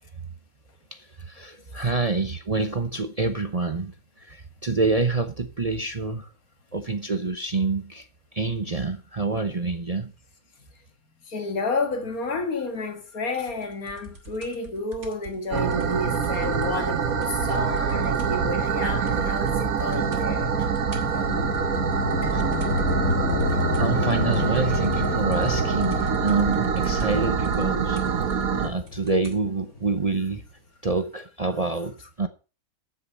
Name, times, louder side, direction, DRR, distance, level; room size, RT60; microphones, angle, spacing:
voice 1, 0.9-6.3 6.7-8.1 8.3-10.1 22.3-22.4 23.8-28.0 28.6-30.4 30.8-32.3, right 3 dB, 35° right, 0.7 m, -27 dB
voice 2, 11.3-20.5 21.1-21.6 22.2-22.3 22.8-23.2, left 3 dB, 75° left, 2.2 m, -31 dB
sound 1, 13.5-18.5 18.7-18.8 19.1-19.5 19.8-20.3 20.6-29.5 30.2-30.3, right 2 dB, 50° right, 2.6 m, -45 dB
sound 2, 15.5-28.7, right 6 dB, 70° right, 1.7 m, -25 dB
sound 3, 19.9-30.0, left 4 dB, 50° left, 1.4 m, -30 dB
14.0 x 6.5 x 5.4 m
omnidirectional pair, 1.5 m